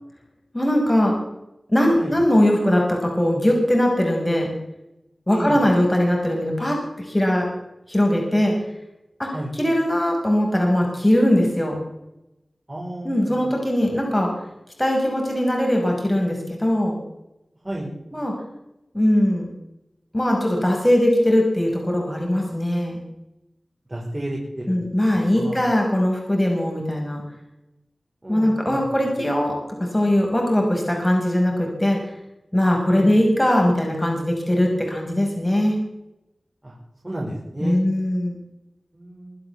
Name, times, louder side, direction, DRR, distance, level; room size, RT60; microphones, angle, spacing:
voice 1, 0.5-1.1 1.7-4.5 5.3-7.5 7.9-8.5 9.2-11.8 13.0-14.3 14.8-17.0 18.1-18.3 18.9-19.5 20.1-23.0 24.7-27.2 28.3-29.6 29.9-32.0 32.5-35.7 37.6-38.4, left 1 dB, 15° left, 0 dB, 5.7 m, -20 dB
voice 2, 5.3-5.6 9.3-9.5 12.7-13.5 17.6-17.9 23.9-24.8 25.1-25.6 28.2-28.8 32.9-33.1 36.6-36.7 37.0-37.8 38.9-39.4, right 1 dB, 30° right, -4 dB, 5.7 m, -32 dB
23.5 x 7.9 x 7.1 m, 0.88 s
wide cardioid pair, 55°, 0 cm